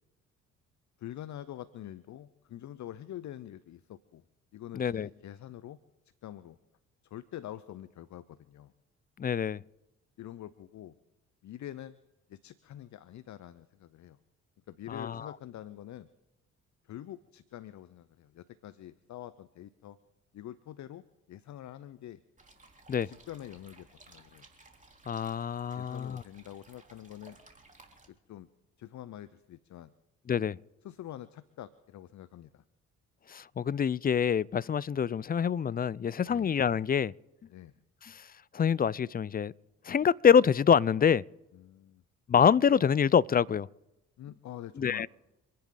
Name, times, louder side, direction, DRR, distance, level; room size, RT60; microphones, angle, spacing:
voice 1, 1.0-4.2 4.5-5.8 6.2-6.6 7.0-8.7 10.2-11.0 11.4-12.0 12.3-14.2 14.7-16.1 16.8-20.0 20.3-22.2 23.0-24.5 25.7-27.4 28.1-28.5 28.8-29.9 30.8-32.6 36.3-36.5 37.5-37.7 41.5-42.0 44.2-45.1, left 12 dB, 55° left, 0.8 m, -45 dB
voice 2, 4.7-5.1 9.2-9.6 14.9-15.3 22.9-23.1 25.1-26.2 30.3-30.6 33.3-37.1 38.1-38.2 38.5-39.5 39.9-41.2 42.3-43.7 44.8-45.1, left 7 dB, 25° left, 0.5 m, -26 dB
sound 1, 22.4-28.1, right 2 dB, 20° right, 3.5 m, -57 dB
27.5 x 10.5 x 3.9 m
hypercardioid pair, 50°, 36 cm